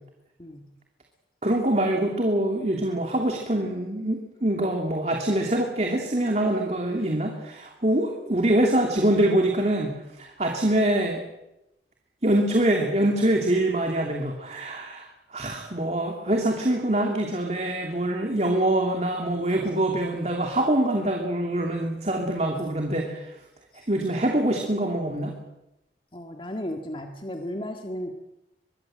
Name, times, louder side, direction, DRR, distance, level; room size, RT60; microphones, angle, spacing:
voice 1, 1.4-11.2 12.2-23.3 23.9-25.3, right 1 dB, 35° right, 2 dB, 2.8 m, -24 dB
voice 2, 26.1-28.1, left 1 dB, 30° left, 4 dB, 1.8 m, -34 dB
24.0 x 22.0 x 7.8 m, 0.90 s
head